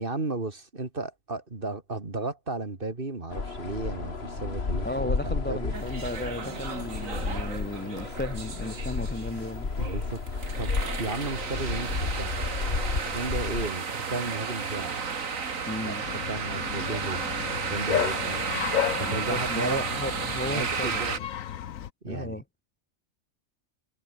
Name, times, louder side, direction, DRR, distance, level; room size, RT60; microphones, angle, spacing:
voice 1, 0.0-5.7 9.8-10.2 10.6-10.7 11.0-12.3 13.0-14.9 15.8-17.2 17.6-18.4 19.0-19.8 20.5-21.1 22.0-22.4, right 3 dB, 40° right, 2.8 m, -34 dB
sound 1, 3.3-13.7, left 4 dB, 50° left, 2.3 m, -32 dB
voice 2, 4.8-9.7 15.7-16.0 19.0-21.3 22.1-22.4, left 1 dB, 10° left, 0.5 m, -35 dB
sound 2, 5.7-21.2, right 5 dB, 75° right, 2.3 m, -33 dB
Bark, 16.0-21.9, left 10 dB, 80° left, 1.3 m, -33 dB
omnidirectional pair, 1.4 m